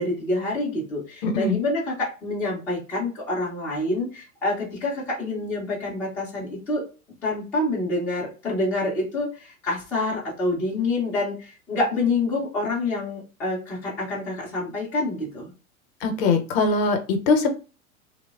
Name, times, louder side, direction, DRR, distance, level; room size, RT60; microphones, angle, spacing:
voice 1, 0.0-6.8 7.2-15.5, left 2 dB, 5° left, -6 dB, 0.3 m, -27 dB
voice 2, 1.2-1.6 16.0-17.5, left 4 dB, 45° left, 6 dB, 0.7 m, -21 dB
3.0 x 2.0 x 2.2 m, 0.32 s
figure-of-eight pair, 95°, 42 cm